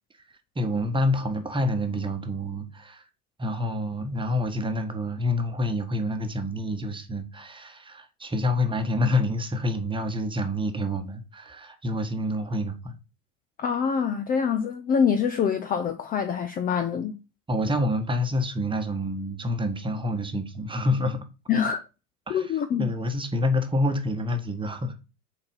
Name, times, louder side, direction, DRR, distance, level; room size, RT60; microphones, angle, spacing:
voice 1, 0.5-3.0 3.4-13.0 17.5-21.2 22.3-22.5 22.8-24.9, left 1 dB, 10° right, 1.3 m, -27 dB
voice 2, 13.6-17.1 21.5-21.8 22.3-22.9, left 7 dB, 20° left, 0.5 m, -25 dB
6.7 x 4.2 x 5.3 m
figure-of-eight pair, 75°, 45 cm